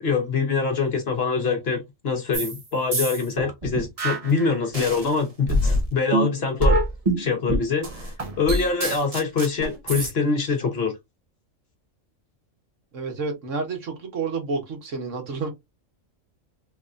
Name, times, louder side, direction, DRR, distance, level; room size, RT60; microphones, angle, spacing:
voice 1, 0.0-6.8 7.2-10.9, left 4 dB, 50° left, 1.2 m, -24 dB
sound 1, 2.3-2.6 2.9-5.1 5.5-10.1, right 1 dB, 30° right, 0.9 m, -24 dB
voice 2, 12.9-15.5, right 4 dB, 65° right, 1.5 m, -29 dB
3.6 x 3.4 x 2.5 m
omnidirectional pair, 1.4 m